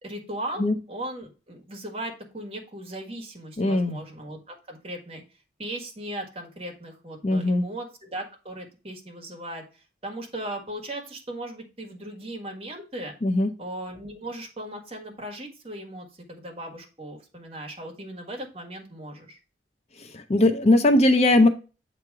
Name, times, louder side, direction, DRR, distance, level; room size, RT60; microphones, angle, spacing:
voice 1, 0.0-5.2 5.6-13.1 13.6-19.4, right 1 dB, 35° right, 2 dB, 1.5 m, -37 dB
voice 2, 3.6-4.0 7.2-7.6 13.2-13.5 20.0-21.5, left 2 dB, 35° left, 8 dB, 0.5 m, -20 dB
7.8 x 3.1 x 4.7 m, 0.33 s
head